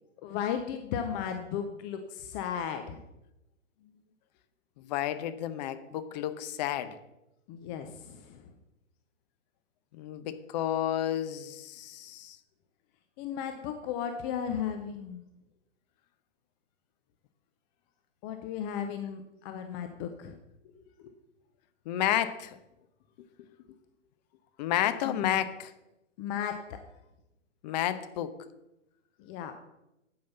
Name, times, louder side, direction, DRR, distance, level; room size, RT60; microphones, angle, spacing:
voice 1, 0.2-3.0 7.5-8.5 13.2-15.2 18.2-20.3 20.6-20.7 25.0-25.4 26.2-26.8 29.2-29.5, left 8 dB, 20° left, 7 dB, 0.5 m, -35 dB
voice 2, 4.8-7.0 9.9-12.4 21.9-22.6 24.6-25.7 27.6-28.3, left 11 dB, 35° left, 12 dB, 0.9 m, -31 dB
9.5 x 8.5 x 5.6 m, 0.92 s
hypercardioid pair, 125°, 38 cm